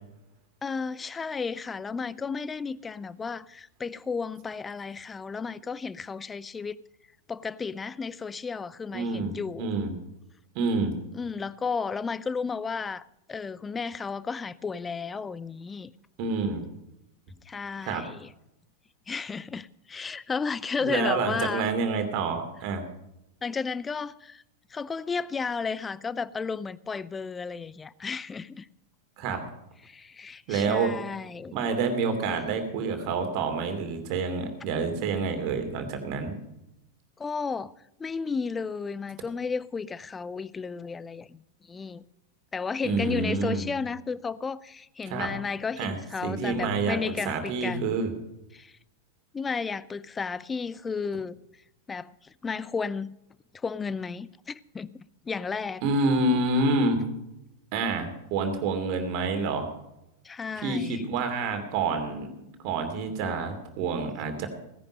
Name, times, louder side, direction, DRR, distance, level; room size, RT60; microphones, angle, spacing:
voice 1, 0.6-6.8 7.3-9.7 11.1-13.0 13.3-15.9 17.5-18.3 19.1-21.7 23.4-24.4 24.7-28.7 29.8-31.6 37.2-37.7 38.0-41.4 41.7-42.0 42.5-48.0 48.5-48.7 49.3-51.4 51.9-53.1 53.6-54.9 55.3-55.8 60.2-61.0, left 5 dB, 15° left, 0.5 m, -33 dB
voice 2, 8.9-9.9 10.5-10.9 16.2-16.6 17.8-18.0 20.8-22.8 29.2-29.4 30.5-30.9 31.5-36.3 42.8-43.6 45.1-45.3 45.8-45.9 46.2-47.0 47.2-48.1 55.8-57.0 57.7-59.7 60.6-64.5, right 3 dB, 45° right, 2.7 m, -28 dB
17.0 x 10.5 x 5.3 m
figure-of-eight pair, 90°, 0 cm